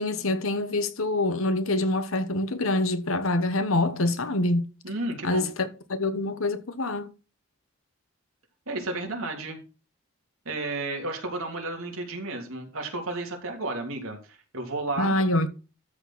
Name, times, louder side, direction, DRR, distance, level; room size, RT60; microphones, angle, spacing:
voice 1, 0.0-4.7 5.2-7.1 15.0-15.5, left 2 dB, 80° left, 1.3 m, -26 dB
voice 2, 4.8-5.5 8.7-9.6 10.4-15.2, right 2 dB, 80° right, 3.1 m, -32 dB
13.0 x 4.5 x 6.1 m
head